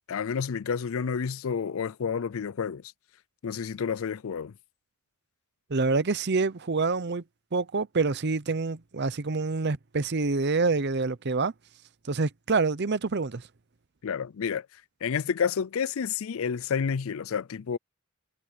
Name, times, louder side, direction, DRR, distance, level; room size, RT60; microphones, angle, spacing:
voice 1, 0.1-2.8 3.4-4.5 14.0-14.7 15.0-17.8, left 6 dB, 70° left, 0.4 m, -30 dB
voice 2, 5.7-7.2 7.5-11.5 12.1-13.5, right 3 dB, 50° right, 0.7 m, -27 dB
head